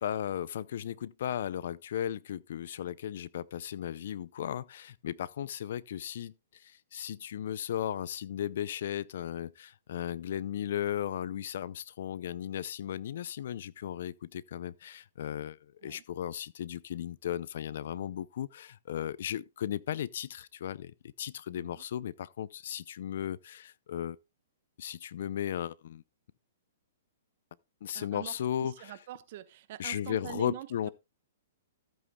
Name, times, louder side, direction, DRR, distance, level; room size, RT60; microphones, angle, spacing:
voice 1, 0.0-24.2 24.8-26.0 27.8-29.0 29.8-30.9, left 10 dB, 65° left, 0.5 m, -36 dB
voice 2, 21.5-21.8 27.9-28.3 28.6-30.9, right 13 dB, 50° right, 1.0 m, -44 dB
14.5 x 8.4 x 2.3 m
hypercardioid pair, 135°, 0 cm